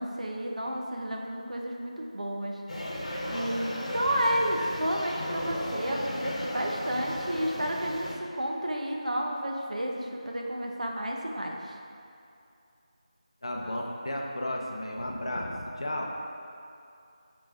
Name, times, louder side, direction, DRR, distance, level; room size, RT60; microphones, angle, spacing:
voice 1, 0.0-2.9 3.3-11.7 13.6-13.8, equal, 75° right, 0 dB, 0.9 m, -31 dB
sound 1, 2.7-8.1, equal, 65° left, 1.2 m, -35 dB
voice 2, 13.4-16.1, left 1 dB, 45° left, 0 dB, 0.7 m, -33 dB
7.5 x 3.9 x 3.7 m, 2.5 s
figure-of-eight pair, 180°, 4 cm